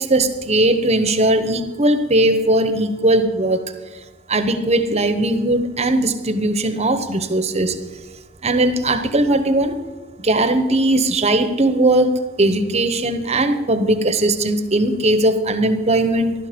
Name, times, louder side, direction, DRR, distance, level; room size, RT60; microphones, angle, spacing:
voice 1, 0.0-3.6 4.3-7.8 8.4-9.8 10.2-16.3, right 1 dB, 35° right, 10 dB, 1.0 m, -18 dB
15.5 x 12.0 x 5.2 m, 1.2 s
head